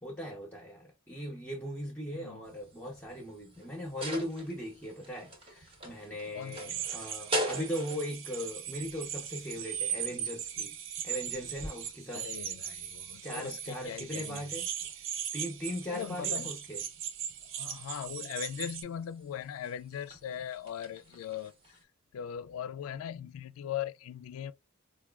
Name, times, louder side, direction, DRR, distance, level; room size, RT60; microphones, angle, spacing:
voice 1, 0.0-10.7 11.0-12.3 13.2-14.7 15.3-16.8, equal, 10° left, 0.7 m, -39 dB
sound 1, 2.4-21.8, equal, 25° right, 0.8 m, -44 dB
voice 2, 6.3-6.8 12.1-14.5 15.9-16.5 17.5-21.5 22.1-24.5, left 9 dB, 80° left, 0.3 m, -39 dB
sound 2, 6.5-18.8, right 9 dB, 60° right, 0.4 m, -39 dB
4.6 x 2.2 x 2.3 m
head